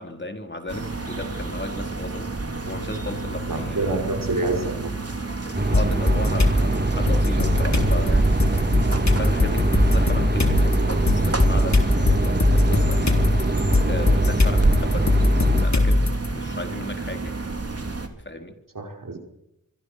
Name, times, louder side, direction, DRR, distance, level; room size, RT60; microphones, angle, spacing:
voice 1, 0.0-2.3 2.7-4.1 5.7-8.6 9.1-13.5 13.9-17.3 18.2-18.6, left 1 dB, 35° left, 5 dB, 4.1 m, -35 dB
sound 1, 0.7-18.1, right 2 dB, 45° right, 3.5 m, -29 dB
voice 2, 3.5-4.9 18.8-19.2, right 2 dB, 80° right, 3 dB, 5.4 m, -27 dB
sound 2, 5.5-15.7, right 2 dB, 30° right, 2.5 m, -24 dB
sound 3, 5.7-6.6 7.1-16.3, left 2 dB, 55° left, 3.6 m, -21 dB
25.0 x 24.5 x 6.6 m, 0.85 s
wide cardioid pair, 70°, 32 cm